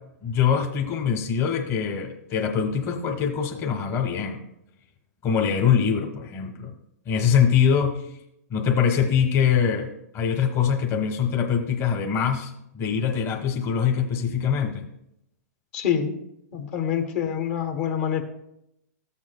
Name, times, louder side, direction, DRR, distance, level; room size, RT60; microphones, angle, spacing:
voice 1, 0.2-4.4 5.2-6.7 7.1-8.0 8.5-14.9, left 7 dB, 30° left, 3 dB, 1.1 m, -23 dB
voice 2, 15.7-16.2 16.5-18.2, left 8 dB, 50° left, 5 dB, 1.2 m, -26 dB
14.5 x 7.3 x 2.2 m, 0.80 s
hypercardioid pair, 130°, 9 cm